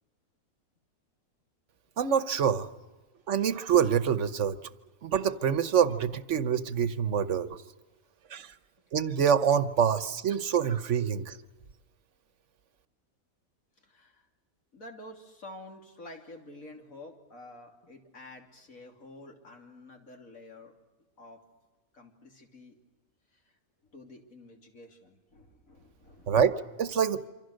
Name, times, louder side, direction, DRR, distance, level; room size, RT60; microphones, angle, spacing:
voice 1, 2.0-2.7 3.3-4.6 5.0-7.6 8.3-8.5 8.9-11.4 26.3-27.3, right 8 dB, 60° right, 13 dB, 1.3 m, -26 dB
voice 2, 13.8-14.3 14.7-20.7 21.2-21.4 21.9-22.8 23.3-23.4 23.9-26.4, left 1 dB, 70° left, 2 dB, 3.4 m, -49 dB
27.5 x 25.5 x 6.5 m, 1.2 s
omnidirectional pair, 1.5 m